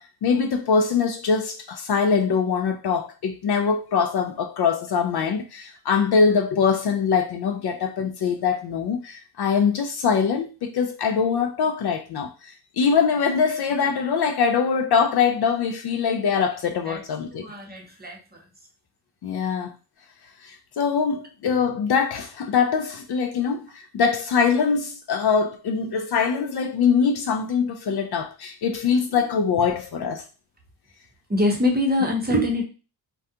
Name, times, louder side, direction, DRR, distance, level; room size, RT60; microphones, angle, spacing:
voice 1, 0.0-17.4 19.2-19.7 20.4-30.2, left 6 dB, 55° left, 0.5 m, -23 dB
voice 2, 17.3-18.2 31.3-32.6, left 1 dB, 20° right, 0.7 m, -23 dB
2.3 x 2.2 x 2.7 m
cardioid pair, 80°, 48 cm